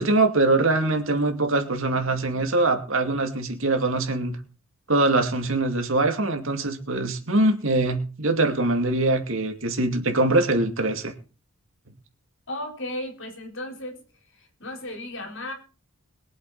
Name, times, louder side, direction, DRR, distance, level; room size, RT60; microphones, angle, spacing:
voice 1, 0.0-4.4 4.9-11.1, right 2 dB, 65° right, 5 dB, 2.6 m, -23 dB
voice 2, 12.5-14.0 14.4-15.5, left 1 dB, 60° left, 3 dB, 4.1 m, -35 dB
22.5 x 8.0 x 4.1 m, 0.34 s
head